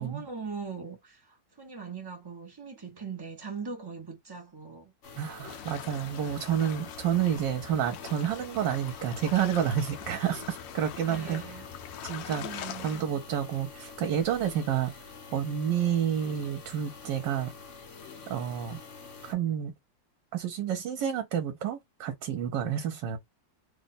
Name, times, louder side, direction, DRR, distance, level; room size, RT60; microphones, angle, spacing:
voice 1, 0.0-4.9 11.0-11.7 12.3-12.9, right 5 dB, 35° right, 0.3 m, -41 dB
sound 1, 5.0-19.3, left 4 dB, 50° left, 1.1 m, -47 dB
voice 2, 5.2-11.6 12.0-14.9 15.3-17.5 18.3-18.8 19.2-19.7 20.3-23.2, right 9 dB, 80° right, 1.3 m, -29 dB
sound 2, 5.4-13.0, left 11 dB, 85° left, 1.3 m, -43 dB
3.2 x 2.2 x 4.0 m
omnidirectional pair, 1.9 m